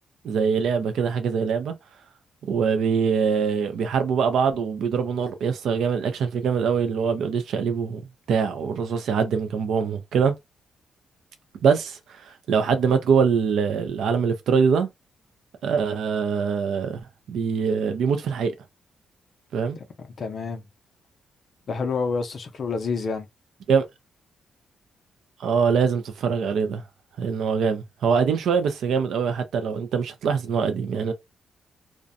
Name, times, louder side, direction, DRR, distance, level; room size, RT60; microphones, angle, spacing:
voice 1, 0.2-1.7 2.5-8.0 8.3-10.3 11.6-14.9 15.6-17.0 17.3-18.5 19.5-19.8 23.7-23.9 25.4-26.8 27.2-31.1, right 6 dB, 75° right, 0.4 m, -23 dB
voice 2, 20.0-20.6 21.7-23.3, left 4 dB, 45° left, 0.4 m, -28 dB
2.5 x 2.1 x 2.5 m
cardioid pair, 145°, 0 cm